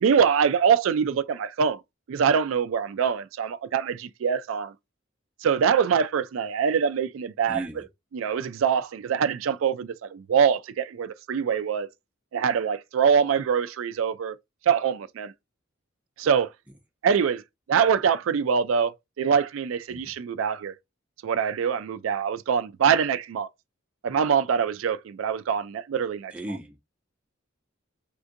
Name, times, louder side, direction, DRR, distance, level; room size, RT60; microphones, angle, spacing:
voice 1, 0.0-1.8 2.1-4.7 5.4-7.9 8.1-11.9 12.3-14.4 14.7-15.3 16.2-16.5 17.0-17.4 17.7-18.9 19.2-20.7 21.2-23.5 24.0-26.3, right 7 dB, 80° right, 0.4 m, -24 dB
voice 2, 7.5-7.8 19.9-20.0 26.3-26.8, right 1 dB, 5° right, 0.7 m, -35 dB
3.6 x 2.5 x 2.5 m
head